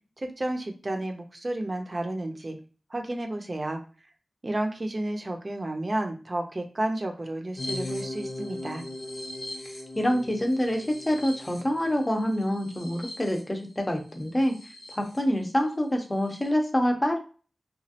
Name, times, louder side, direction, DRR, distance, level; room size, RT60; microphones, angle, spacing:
voice 1, 0.2-2.5 2.9-3.8 4.4-8.8, right 1 dB, 40° right, 4 dB, 0.6 m, -31 dB
sound 1, 7.6-15.2 15.6-15.7 16.0-16.5, left 1 dB, 75° left, 1.0 m, -39 dB
voice 2, 9.9-14.6 14.9-17.2, equal, 20° left, 3 dB, 0.7 m, -26 dB
3.0 x 2.4 x 2.8 m, 0.36 s
wide cardioid pair, 85°, 0 cm